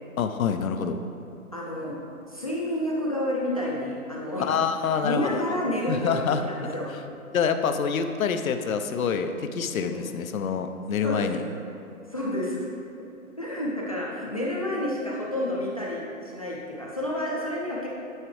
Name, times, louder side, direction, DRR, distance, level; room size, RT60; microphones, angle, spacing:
voice 1, 0.2-1.0 4.4-5.5 5.9-6.4 7.3-11.4, left 6 dB, 70° left, 8 dB, 0.7 m, -26 dB
voice 2, 1.5-2.0 2.3-4.5 5.0-7.1 9.8-10.1 11.0-11.6 12.1-12.7 13.4-17.9, left 1 dB, 25° left, -4 dB, 0.5 m, -30 dB
9.5 x 5.8 x 3.2 m, 2.7 s
hypercardioid pair, 170°, 43 cm